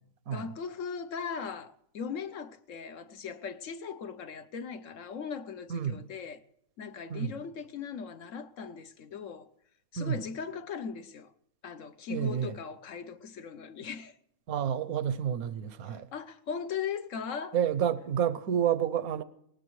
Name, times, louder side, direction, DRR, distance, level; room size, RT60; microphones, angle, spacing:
voice 1, 0.3-6.4 6.8-9.5 9.9-11.3 11.6-14.1 15.9-17.6, left 6 dB, 65° left, 1.1 m, -39 dB
voice 2, 5.7-6.0 7.1-7.3 10.0-10.3 12.1-12.6 14.5-16.1 17.5-19.2, right 9 dB, 85° right, 1.3 m, -29 dB
19.5 x 19.0 x 3.1 m
omnidirectional pair, 1.5 m